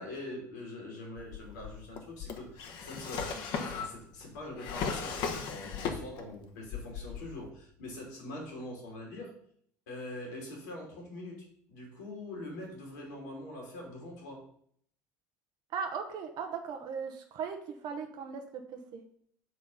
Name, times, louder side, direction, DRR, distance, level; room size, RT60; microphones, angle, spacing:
voice 1, 0.0-9.3 9.9-14.4, left 1 dB, 75° left, -1 dB, 2.7 m, -43 dB
Drawer open or close, 1.2-6.4 6.7-7.5, left 6 dB, 55° left, 1.1 m, -37 dB
voice 2, 15.7-17.6 17.8-19.0, right 6 dB, 50° right, 5 dB, 0.9 m, -38 dB
7.3 x 3.5 x 5.5 m, 0.63 s
hypercardioid pair, 70°, 9 cm